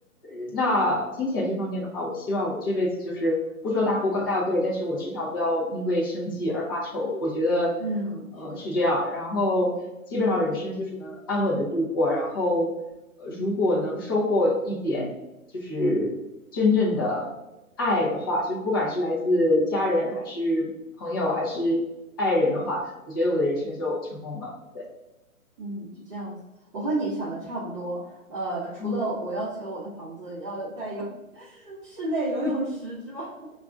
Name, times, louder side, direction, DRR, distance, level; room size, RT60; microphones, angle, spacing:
voice 1, 0.2-3.4 3.6-7.7 8.4-9.7 10.1-12.7 13.2-15.1 15.5-16.1 16.5-17.3 17.8-20.7 21.0-21.8 22.2-24.8 28.8-29.0, left 1 dB, 15° left, -4 dB, 0.5 m, -25 dB
voice 2, 7.8-8.7 10.3-10.5 25.6-26.4 26.7-33.3, right 2 dB, 20° right, -10 dB, 0.8 m, -32 dB
5.6 x 2.3 x 2.4 m, 0.98 s
hypercardioid pair, 140°, 43 cm